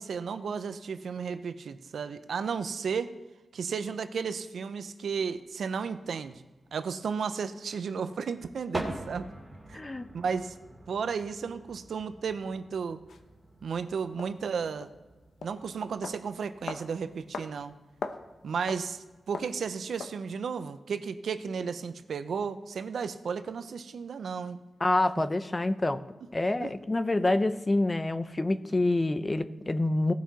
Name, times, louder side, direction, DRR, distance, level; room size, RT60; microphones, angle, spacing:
voice 1, 0.0-3.1 3.5-6.4 6.7-9.3 9.7-9.8 10.1-10.6 10.9-13.0 13.6-14.9 15.4-17.7 18.4-24.6 26.6-26.7, right 6 dB, 75° right, 11 dB, 0.6 m, -33 dB
sound 1, 5.3-5.4 6.2-7.1 8.2-8.3 8.4-19.7, right 1 dB, 10° right, 2.2 m, -46 dB
voice 2, 9.7-10.1 24.8-26.0 26.3-30.1, left 2 dB, 20° left, 11 dB, 0.5 m, -27 dB
sound 2, 13.1-13.2 14.2-14.3 14.8-15.0 15.4-15.6 16.0-16.2 16.7-16.9 17.3-17.5 17.8-18.2 18.7-18.9 19.3-19.6 20.0-20.2, left 5 dB, 85° left, 0.7 m, -38 dB
17.5 x 6.2 x 4.1 m, 1.2 s
wide cardioid pair, 150°, 0 cm